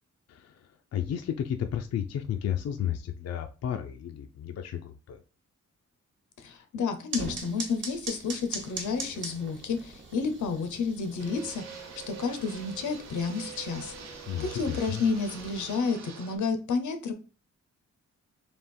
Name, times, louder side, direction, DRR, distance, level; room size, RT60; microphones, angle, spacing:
voice 1, 0.3-5.2 14.3-15.0, left 9 dB, 60° left, 6 dB, 0.4 m, -33 dB
voice 2, 6.4-13.9 14.4-17.1, left 4 dB, 90° left, 7 dB, 0.8 m, -31 dB
sound 1, 7.1-15.8, right 3 dB, 40° right, 1.0 m, -42 dB
Fixed-wing aircraft airplane, 11.2-16.4, right 6 dB, 65° right, 0.8 m, -44 dB
3.6 x 2.9 x 4.3 m, 0.35 s
wide cardioid pair, 155°, 29 cm